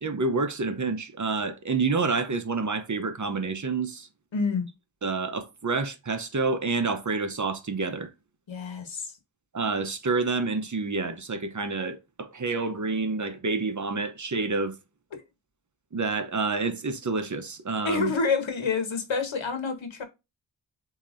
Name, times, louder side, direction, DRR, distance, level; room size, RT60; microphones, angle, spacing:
voice 1, 0.0-4.1 5.0-8.1 9.5-14.8 15.9-18.1, right 4 dB, 40° right, 0.8 m, -28 dB
voice 2, 4.3-4.7 8.5-9.1 15.1-15.2 17.8-20.0, left 4 dB, 75° left, 1.3 m, -28 dB
7.2 x 2.9 x 2.6 m
cardioid pair, 60°, 46 cm